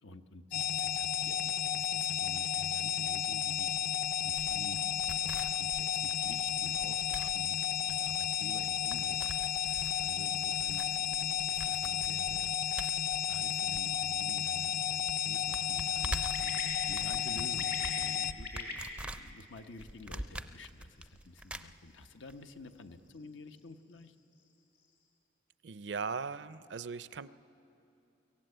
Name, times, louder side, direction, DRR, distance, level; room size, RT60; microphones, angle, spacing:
voice 1, 0.0-3.7 4.2-4.8 5.2-9.2 10.0-12.5 13.3-24.1, left 2 dB, 90° left, 7 dB, 1.0 m, -50 dB
sound 1, 0.5-18.3, left 10 dB, 50° left, 0.5 m, -33 dB
sound 2, 4.3-14.4 14.6-14.7 15.1-22.3 22.6-22.7, right 1 dB, 5° right, 0.4 m, -45 dB
sound 3, 13.5-25.1, left 2 dB, 70° left, 4.6 m, -49 dB
voice 2, 25.6-27.3, right 5 dB, 70° right, 15 dB, 0.5 m, -38 dB
25.0 x 17.0 x 7.9 m, 2.8 s
head